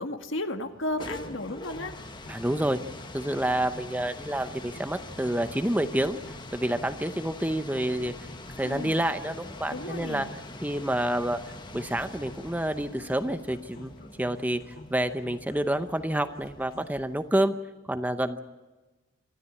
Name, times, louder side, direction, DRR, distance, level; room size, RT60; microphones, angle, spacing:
voice 1, 0.0-1.9 8.6-9.0 9.7-10.3, left 1 dB, 65° left, 6 dB, 1.8 m, -33 dB
sound 1, 0.7-17.4, left 2 dB, 20° left, 1.2 m, -44 dB
sound 2, 1.0-17.0, left 2 dB, 45° left, 2.3 m, -49 dB
voice 2, 2.3-2.8 3.1-6.2 6.5-8.1 8.6-10.3 10.6-11.4 11.7-14.6 14.9-17.5 17.9-18.4, right 1 dB, 10° right, 9 dB, 0.7 m, -28 dB
26.5 x 13.0 x 9.7 m, 1.2 s
head